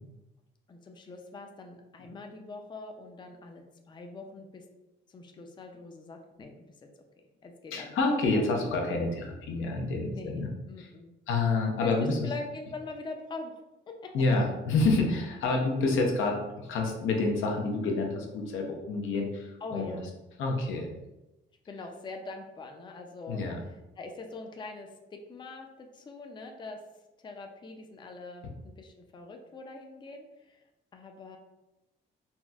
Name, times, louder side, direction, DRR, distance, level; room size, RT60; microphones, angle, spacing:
voice 1, 0.7-4.6 5.1-6.9 7.4-8.0 8.3-8.5 10.0-10.4 10.7-11.1 11.8-11.9 12.2-13.6 19.6-20.1 21.7-23.4 24.0-26.8 27.2-30.6 30.9-31.4, left 3 dB, 25° left, 3 dB, 0.4 m, -43 dB
voice 2, 7.7-10.5 10.8-10.9 11.3-12.3 14.1-20.0 20.4-20.9 23.3-23.6, left 3 dB, 80° left, 1 dB, 0.6 m, -28 dB
4.0 x 2.1 x 2.3 m, 0.98 s
cardioid pair, 90°, 20 cm